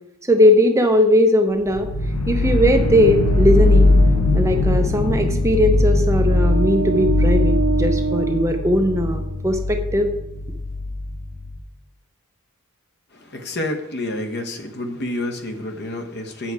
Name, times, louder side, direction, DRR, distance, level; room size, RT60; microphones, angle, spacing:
voice 1, 0.3-1.9 2.3-3.9 4.3-10.1, left 1 dB, 15° right, 0.6 m, -18 dB
sound 1, 1.7-11.6, left 2 dB, 85° left, 0.8 m, -20 dB
sound 2, 2.5-9.4, right 5 dB, 70° right, 0.9 m, -28 dB
voice 2, 13.1-16.5, left 1 dB, 50° left, 1.0 m, -29 dB
7.3 x 6.8 x 4.7 m
head